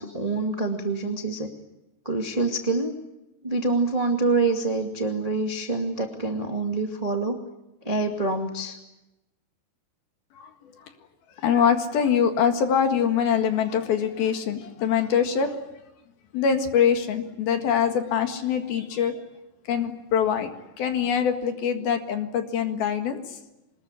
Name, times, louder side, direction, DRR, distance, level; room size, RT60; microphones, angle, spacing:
voice 1, 0.0-1.5 2.0-2.9 3.4-7.4 7.8-8.7, right 3 dB, 30° right, 3 dB, 0.7 m, -26 dB
voice 2, 11.4-15.6 16.3-19.1 19.7-20.5 20.8-23.2, left 7 dB, 65° left, 6 dB, 3.5 m, -23 dB
25.0 x 20.5 x 9.8 m, 0.94 s
omnidirectional pair, 4.9 m